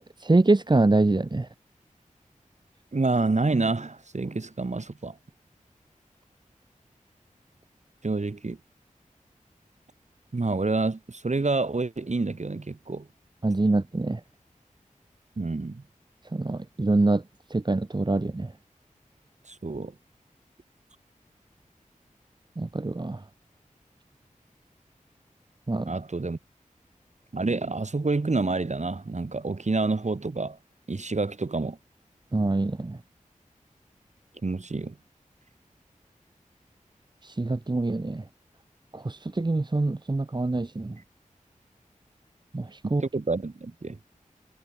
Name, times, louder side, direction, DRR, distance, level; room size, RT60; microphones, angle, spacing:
voice 1, 0.0-1.5 13.4-14.2 16.3-17.2 17.5-18.5 22.6-23.2 25.7-25.9 32.3-33.0 37.2-38.2 38.9-41.0 42.5-43.0, right 2 dB, 35° right, 1.2 m, -25 dB
voice 2, 2.9-5.2 8.0-8.6 10.3-13.1 15.4-15.8 19.5-19.9 25.9-26.4 27.3-30.6 30.9-31.8 34.4-35.0 42.8-44.0, right 3 dB, 55° right, 6.2 m, -28 dB
wide cardioid pair, 60°, 14 cm